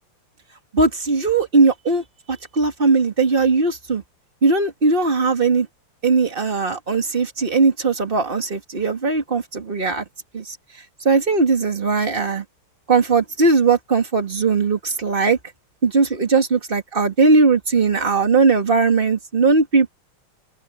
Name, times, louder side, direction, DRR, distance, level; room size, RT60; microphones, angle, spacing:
voice 1, 0.7-4.0 4.4-5.7 6.0-10.0 10.3-10.6 11.0-12.4 12.9-15.4 15.8-19.9, right 4 dB, 25° right, 2.2 m, -19 dB
omnidirectional pair, 2.4 m